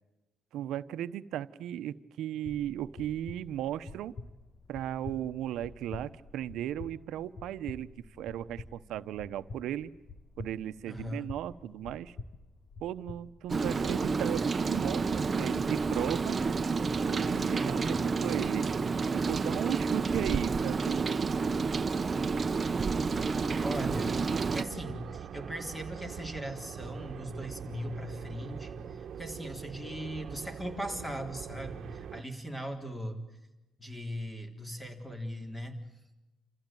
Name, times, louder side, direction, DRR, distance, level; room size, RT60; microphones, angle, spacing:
voice 1, 0.5-4.1 4.7-7.9 8.2-9.9 10.4-12.2 12.8-16.4 17.1-18.7 19.1-21.7, right 11 dB, 85° right, 13 dB, 0.8 m, -36 dB
sound 1, 2.4-13.9, left 3 dB, 50° left, 1.7 m, -48 dB
voice 2, 10.9-11.3 17.6-18.1 23.4-24.2 24.5-33.2 33.8-35.8, equal, 10° left, 5 dB, 3.9 m, -39 dB
Rain, 13.5-24.6, right 4 dB, 35° right, 0.8 m, -30 dB
sound 2, 22.9-32.2, right 8 dB, 60° right, 1.2 m, -43 dB
29.0 x 15.0 x 9.2 m, 1.0 s
cardioid pair, 90°, 0 cm